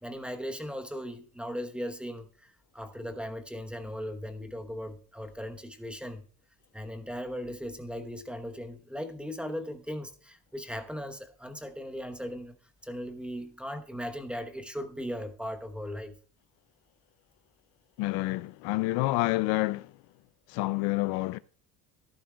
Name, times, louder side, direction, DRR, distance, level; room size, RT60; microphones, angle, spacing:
voice 1, 0.0-6.2 6.7-12.6 12.8-16.1, equal, 5° right, 0.9 m, -38 dB
voice 2, 18.0-20.0 20.5-21.4, left 20 dB, 75° left, 0.5 m, -28 dB
14.0 x 11.5 x 2.3 m
cardioid pair, 120°, 39 cm